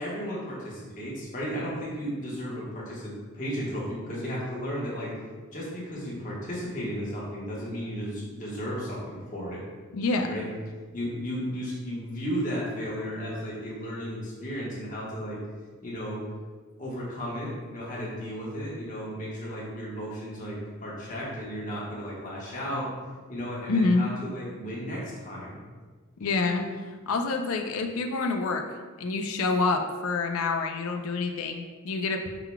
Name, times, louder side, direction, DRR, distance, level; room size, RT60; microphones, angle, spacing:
voice 1, 0.0-5.1 5.5-9.6 10.3-10.5 10.9-15.4 15.8-16.2 16.8-22.9 23.3-25.6, equal, 35° left, -6 dB, 1.2 m, -34 dB
voice 2, 9.9-10.3 23.7-24.0 26.2-26.6 27.1-28.6 29.0-32.3, left 3 dB, 80° left, 4 dB, 0.4 m, -27 dB
5.9 x 3.8 x 2.2 m, 1.4 s
head